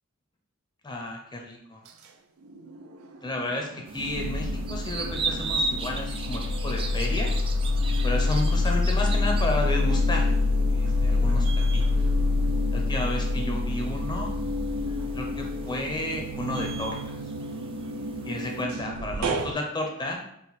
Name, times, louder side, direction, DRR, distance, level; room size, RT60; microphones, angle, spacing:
voice 1, 0.8-1.8 3.2-7.3 8.0-10.3 10.7-11.8 12.7-14.3 15.1-17.2 18.2-20.2, left 1 dB, 20° left, 1 dB, 0.6 m, -32 dB
sound 1, 2.4-3.3 3.6-19.5, left 2 dB, 90° right, 0.4 m, -27 dB
sound 2, 3.9-18.6, right 3 dB, 25° right, 0.4 m, -38 dB
4.1 x 2.5 x 4.0 m, 0.74 s
head